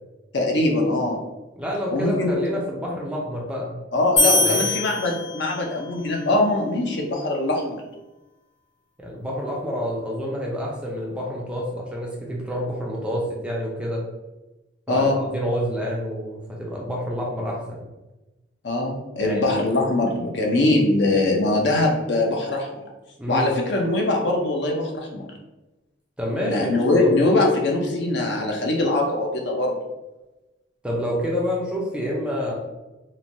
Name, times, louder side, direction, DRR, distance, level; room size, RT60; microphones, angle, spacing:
voice 1, 0.3-1.2 1.9-2.3 3.9-7.8 14.9-15.2 18.6-22.8 23.3-25.3 26.4-29.8, left 2 dB, 60° left, 0 dB, 0.5 m, -22 dB
voice 2, 1.6-3.8 4.4-4.7 9.0-14.0 14.9-17.8 19.2-19.5 23.2-23.5 26.2-26.7 27.0-27.2 30.8-32.5, equal, 5° right, -3 dB, 0.4 m, -28 dB
sound 1, 4.2-5.8, left 2 dB, 75° left, 1.0 m, -22 dB
3.0 x 2.1 x 2.6 m, 1.0 s
head